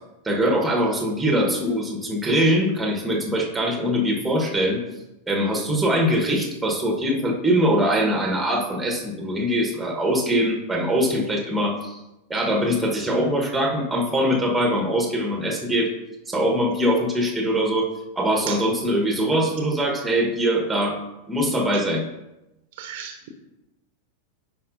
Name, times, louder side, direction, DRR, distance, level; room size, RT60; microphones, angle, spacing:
voice 1, 0.2-4.8 5.3-12.0 12.3-15.9 16.3-17.9 18.2-21.0 21.3-22.0, equal, 5° right, 0 dB, 1.4 m, -22 dB
voice 2, 22.8-23.3, right 7 dB, 50° right, 4 dB, 0.9 m, -37 dB
10.0 x 4.9 x 2.7 m, 0.95 s
figure-of-eight pair, 90°, 0 cm